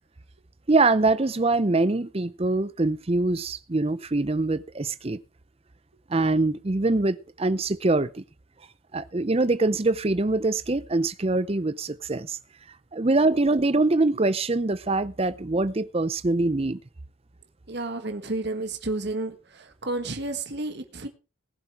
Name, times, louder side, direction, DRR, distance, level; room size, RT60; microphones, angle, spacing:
voice 1, 0.7-5.2 6.1-8.2 8.9-12.4 12.9-16.8, right 2 dB, 30° right, 0.6 m, -24 dB
voice 2, 17.7-21.1, right 2 dB, 50° right, 1.6 m, -31 dB
19.5 x 7.4 x 4.7 m
head